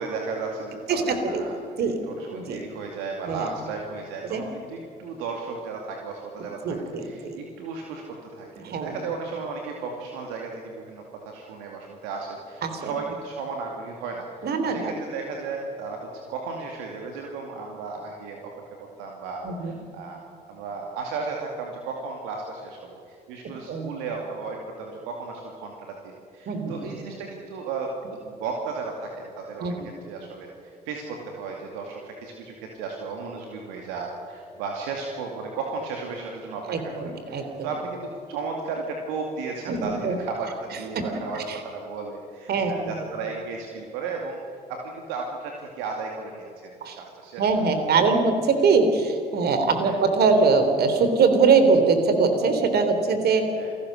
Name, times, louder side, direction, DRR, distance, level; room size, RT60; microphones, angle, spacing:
voice 1, 0.0-18.5 18.8-20.2 20.5-29.7 30.1-44.4 44.7-47.5 49.8-49.9 53.6-53.7, right 4 dB, 70° right, 1 dB, 2.4 m, -35 dB
voice 2, 0.9-1.4 1.8-2.0 2.3-2.6 3.3-3.5 4.2-4.4 6.6-7.4 8.6-8.9 12.6-12.9 14.4-14.9 19.4-19.7 23.7-23.9 26.5-26.7 29.6-29.9 36.7-37.7 39.7-40.2 40.9-41.0 41.3-41.6 42.5-42.9 46.8-47.0 47.4-53.4, right 4 dB, 50° right, 7 dB, 3.4 m, -22 dB
28.5 x 18.0 x 6.5 m, 2.5 s
figure-of-eight pair, 50°, 20 cm